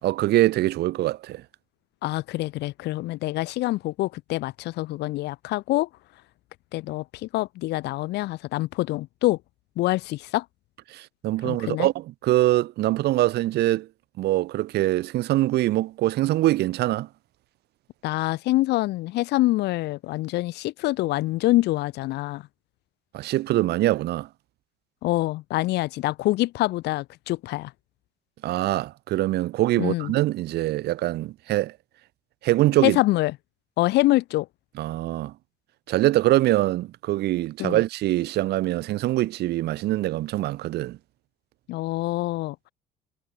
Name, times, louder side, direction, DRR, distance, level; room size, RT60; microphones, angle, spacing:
voice 1, 0.0-1.4 10.9-13.9 14.2-17.1 23.1-24.3 28.4-31.7 32.4-33.0 34.8-35.3 35.9-41.0, right 16 dB, 75° right, 2.6 m, -23 dB
voice 2, 2.0-5.9 6.7-9.4 9.8-10.4 11.4-11.9 18.0-22.4 25.0-27.7 29.8-30.1 32.8-33.3 33.8-34.5 37.6-37.8 41.7-42.7, left 18 dB, 85° left, 4.0 m, -25 dB
cardioid pair, 110°, 17 cm